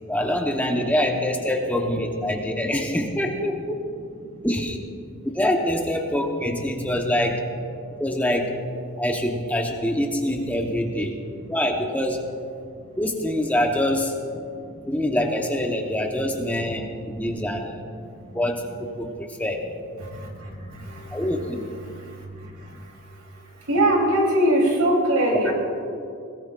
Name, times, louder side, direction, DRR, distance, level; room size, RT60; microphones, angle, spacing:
voice 1, 0.1-3.8 4.4-4.8 5.2-7.4 8.0-8.6 9.0-11.1 11.5-12.3 13.0-14.1 14.9-16.8 17.1-17.8 18.3-19.7 21.1-21.6, left 1 dB, 5° left, 1 dB, 0.9 m, -25 dB
voice 2, 20.1-20.5 20.8-21.3 23.7-25.5, right 1 dB, 85° right, 0 dB, 3.3 m, -21 dB
21.0 x 17.5 x 2.5 m, 2.4 s
head